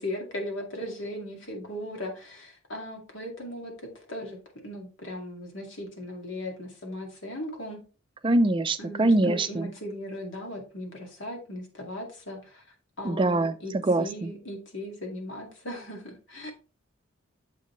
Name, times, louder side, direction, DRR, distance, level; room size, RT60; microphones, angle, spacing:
voice 1, 0.0-4.4 4.6-7.8 8.8-12.6 13.0-16.5, left 1 dB, 65° left, 2.1 m, -38 dB
voice 2, 8.2-9.7 13.0-14.3, right 2 dB, 25° right, 0.4 m, -24 dB
7.5 x 5.2 x 3.1 m
head